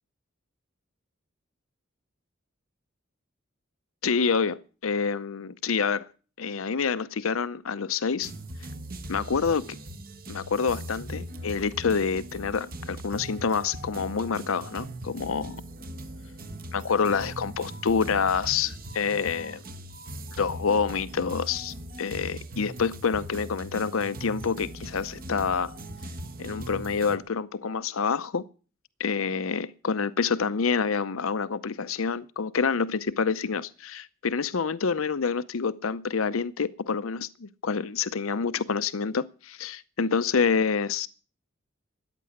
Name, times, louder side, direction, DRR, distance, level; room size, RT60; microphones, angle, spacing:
voice 1, 4.0-6.1 6.4-8.3 9.1-9.8 10.3-15.6 16.7-19.6 20.4-25.7 26.4-28.5 29.0-41.1, left 5 dB, 75° left, 0.7 m, -27 dB
sound 1, 8.2-27.2, right 1 dB, 45° right, 1.4 m, -40 dB
14.5 x 9.8 x 8.5 m
head